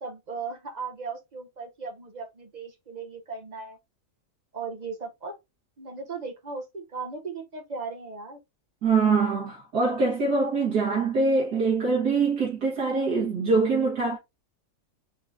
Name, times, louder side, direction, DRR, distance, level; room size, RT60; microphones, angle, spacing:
voice 1, 0.0-3.8 4.5-5.4 5.8-8.4, right 4 dB, 35° right, 0.7 m, -37 dB
voice 2, 8.8-14.2, right 4 dB, 75° right, 2.0 m, -24 dB
4.9 x 3.8 x 2.6 m
omnidirectional pair, 1.7 m